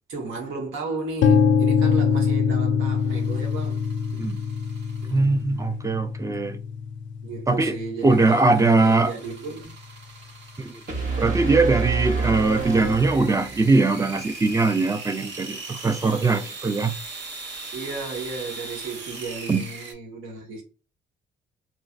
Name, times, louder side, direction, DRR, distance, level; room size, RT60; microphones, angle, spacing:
voice 1, 0.1-3.8 7.2-9.7 17.7-20.6, right 3 dB, 85° right, 1.1 m, -34 dB
sound 1, 1.2-9.1, left 6 dB, 75° left, 0.4 m, -24 dB
sound 2, 3.0-5.5 8.0-19.9, right 3 dB, 65° right, 0.9 m, -40 dB
voice 2, 5.1-6.6 7.5-7.7 8.0-9.1 10.6-10.7 11.2-16.9 19.5-19.6, right 3 dB, 15° right, 0.4 m, -21 dB
sound 3, 10.9-13.8, right 4 dB, 40° right, 1.0 m, -27 dB
3.2 x 2.5 x 2.4 m
cardioid pair, 90°, 20 cm